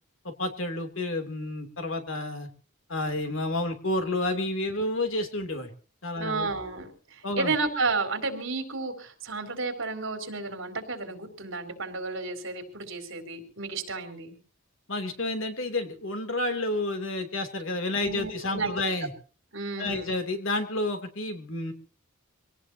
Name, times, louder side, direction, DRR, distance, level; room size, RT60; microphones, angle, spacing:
voice 1, 0.2-2.5 2.9-5.7 6.0-6.5 7.2-7.5 14.9-19.1 19.8-21.7, left 2 dB, 70° left, 6 dB, 3.0 m, -30 dB
voice 2, 6.2-14.3 18.0-18.9 19.5-20.1, right 3 dB, 65° right, 6 dB, 4.1 m, -32 dB
25.0 x 18.0 x 2.9 m, 0.39 s
head